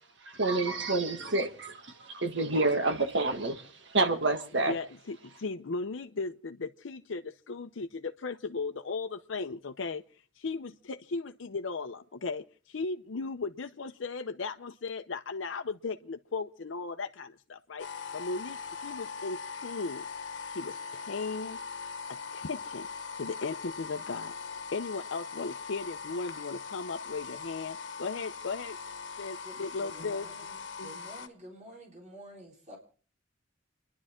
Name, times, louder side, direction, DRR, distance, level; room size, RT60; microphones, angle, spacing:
voice 1, 0.2-4.7, right 2 dB, 70° right, 1.7 m, -28 dB
voice 2, 4.6-10.0 10.4-17.9 18.1-20.1 20.5-21.6 22.1-22.9 23.2-28.8 29.2-30.3 30.8-31.0, left 4 dB, 85° left, 0.6 m, -37 dB
sound 1, 17.8-31.3, left 5 dB, 70° left, 1.2 m, -41 dB
voice 3, 29.4-32.8, equal, 40° right, 3.9 m, -50 dB
30.0 x 11.0 x 3.6 m
head